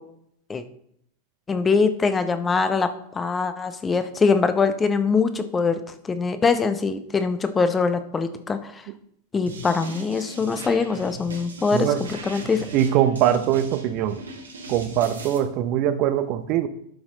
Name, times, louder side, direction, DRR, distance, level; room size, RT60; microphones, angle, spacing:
voice 1, 1.5-2.9 3.1-5.8 6.1-8.8 9.3-12.7, left 4 dB, 15° left, 10 dB, 0.8 m, -23 dB
sound 1, 9.5-15.4, right 2 dB, 70° right, 1.9 m, -39 dB
voice 2, 11.7-12.0 12.7-14.2 14.7-16.7, right 11 dB, 40° right, 11 dB, 0.7 m, -22 dB
11.5 x 6.1 x 3.8 m, 0.70 s
figure-of-eight pair, 90°, 0 cm